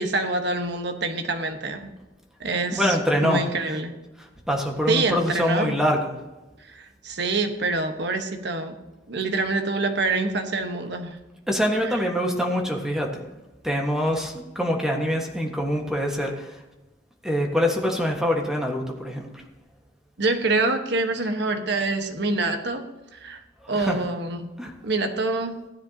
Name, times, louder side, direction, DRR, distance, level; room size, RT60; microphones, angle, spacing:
voice 1, 0.0-1.9 2.4-3.9 4.9-5.8 6.6-8.7 9.1-11.2 20.2-22.8 23.1-23.4 23.7-24.5 24.8-25.5, right 3 dB, 65° right, 6 dB, 1.3 m, -26 dB
voice 2, 2.7-3.8 4.2-6.1 11.5-13.2 13.6-16.6 17.2-19.3 23.6-24.0 24.6-24.7, equal, 5° right, 0 dB, 1.5 m, -25 dB
15.5 x 10.0 x 2.8 m, 1.1 s
head